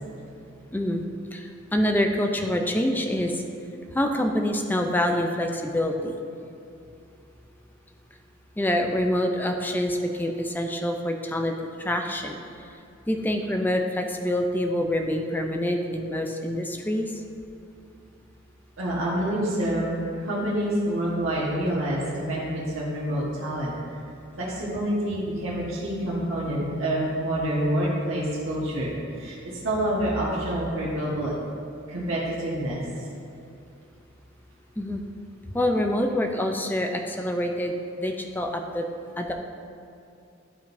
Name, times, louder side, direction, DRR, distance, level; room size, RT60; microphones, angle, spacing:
voice 1, 0.7-1.0 1.3-3.3 3.9-6.1 8.6-12.4 13.1-17.1 34.8-35.0 35.5-38.8 39.2-39.3, left 1 dB, 10° left, 3 dB, 0.5 m, -26 dB
voice 2, 18.8-23.7 24.4-31.3 31.9-32.8, right 1 dB, 80° right, -7 dB, 1.4 m, -27 dB
11.5 x 5.0 x 2.7 m, 2.6 s
head